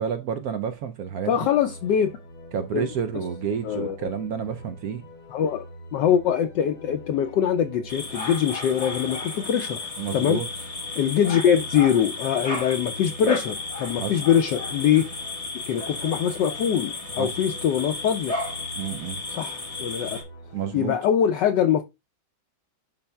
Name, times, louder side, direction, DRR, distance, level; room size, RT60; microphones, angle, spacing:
voice 1, 0.0-1.4 2.5-5.0 10.0-10.5 14.0-14.1 17.2-17.4 18.8-19.2 20.5-21.0, right 7 dB, 80° right, 0.8 m, -30 dB
sound 1, 1.3-20.9, equal, 90° left, 2.2 m, -44 dB
voice 2, 1.3-2.1 2.7-2.9 3.6-4.1 5.3-5.7 5.9-10.4 11.0-15.1 15.7-18.4 19.3-20.2 20.7-21.8, left 9 dB, 70° left, 1.1 m, -23 dB
sound 2, 7.9-20.2, left 3 dB, 25° left, 0.9 m, -33 dB
11.0 x 4.2 x 2.2 m
omnidirectional pair, 2.2 m